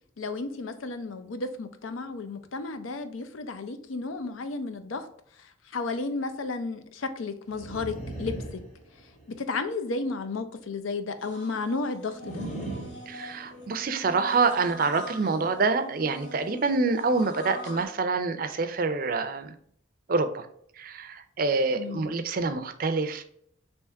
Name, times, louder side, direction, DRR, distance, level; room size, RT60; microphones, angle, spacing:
voice 1, 0.2-5.1 5.4-8.6 9.3-12.4 21.7-22.1, left 3 dB, 85° left, 9 dB, 0.6 m, -33 dB
sound 1, 7.5-9.3 12.2-13.8, right 2 dB, 35° left, 1.5 m, -38 dB
brushing teeth with electric toothbrush, 11.2-17.9, left 1 dB, 60° left, 1.5 m, -44 dB
voice 2, 13.1-19.5 20.1-20.5 20.8-23.2, right 4 dB, 45° right, 9 dB, 0.4 m, -26 dB
3.5 x 3.0 x 4.4 m, 0.66 s
head